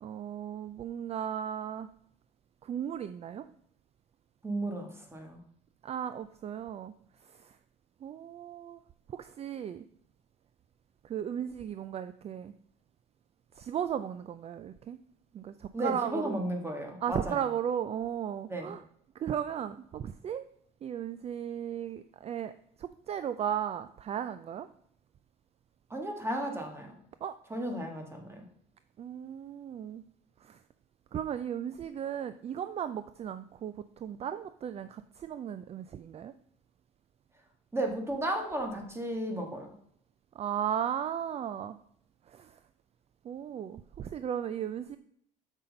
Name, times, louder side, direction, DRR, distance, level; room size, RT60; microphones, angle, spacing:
voice 1, 0.0-1.9 2.6-3.5 5.8-6.9 8.0-8.8 9.1-9.8 11.0-12.5 13.6-15.0 15.3-16.4 17.0-18.8 19.2-20.5 20.8-22.5 22.8-24.7 27.2-27.3 29.0-30.0 30.4-30.6 31.1-33.7 34.0-36.3 40.4-41.8 42.3-42.5 43.2-45.0, right 9 dB, 40° right, 12 dB, 0.4 m, -35 dB
voice 2, 4.4-5.4 15.7-17.5 18.5-18.7 25.9-26.9 27.5-28.4 37.7-39.7, right 1 dB, 15° right, 3 dB, 1.6 m, -34 dB
7.2 x 5.8 x 5.2 m, 0.66 s
cardioid pair, 110°, 17 cm